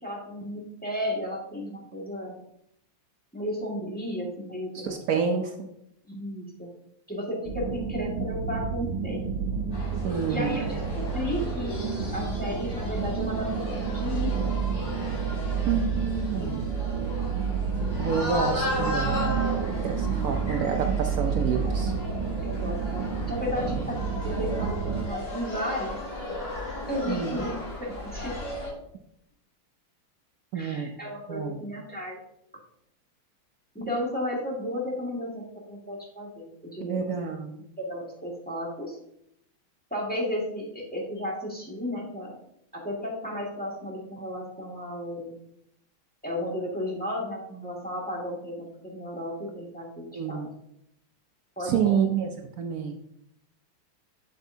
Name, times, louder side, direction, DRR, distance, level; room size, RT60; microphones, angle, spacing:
voice 1, 0.0-2.4 3.3-5.0 6.1-6.7 7.1-9.2 10.3-11.8 12.1-14.5 16.3-16.5 22.4-26.0 26.9-28.3 30.5-32.2 33.7-37.1 37.8-39.0 39.9-42.4 42.7-45.3 46.2-50.4 51.6-52.1, left 1 dB, 5° left, -4 dB, 1.8 m, -33 dB
voice 2, 4.7-5.5 10.0-10.6 15.6-16.7 18.0-19.5 19.8-21.9 23.6-23.8 27.1-27.4 30.5-30.9 31.3-31.6 36.8-37.7 50.1-50.6 51.6-52.3 52.6-53.0, right 7 dB, 90° right, 4 dB, 0.8 m, -28 dB
sound 1, 7.4-25.1, right 6 dB, 65° right, 1.3 m, -30 dB
sound 2, 9.7-28.7, left 1 dB, 90° left, 3.7 m, -35 dB
8.1 x 7.8 x 2.7 m, 0.76 s
omnidirectional pair, 2.3 m